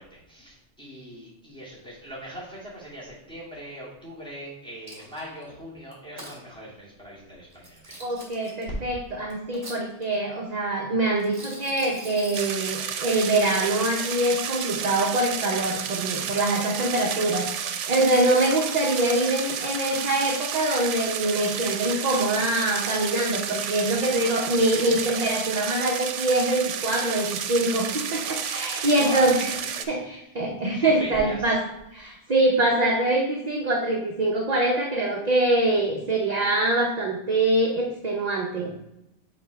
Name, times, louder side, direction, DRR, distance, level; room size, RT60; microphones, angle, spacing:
voice 1, 0.0-8.0 28.9-29.3 29.8-30.0 30.7-31.6, equal, 5° left, -8 dB, 2.4 m, -40 dB
Coin (dropping), 4.9-5.4 5.9-6.4 7.5-8.6 9.3-10.2 11.2-12.6 13.2-13.7 14.1-14.7, right 1 dB, 25° right, 1.9 m, -43 dB
voice 2, 8.0-29.5 29.9-31.6 31.9-38.7, right 1 dB, 40° right, -1 dB, 0.8 m, -24 dB
sound 1, 12.3-29.8, right 8 dB, 85° right, 0.9 m, -31 dB
7.1 x 4.4 x 3.4 m, 0.87 s
omnidirectional pair, 1.2 m